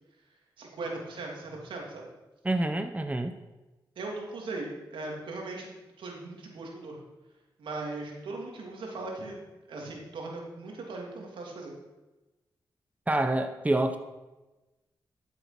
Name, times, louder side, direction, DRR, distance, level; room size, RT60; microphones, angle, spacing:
voice 1, 0.6-2.0 4.0-7.0 7.6-9.4 9.7-11.7, right 2 dB, 85° right, -1 dB, 3.1 m, -39 dB
voice 2, 2.4-3.3 13.1-14.0, right 1 dB, 15° right, 7 dB, 1.1 m, -27 dB
12.5 x 7.6 x 6.2 m, 1.1 s
cardioid pair, 55°, 8 cm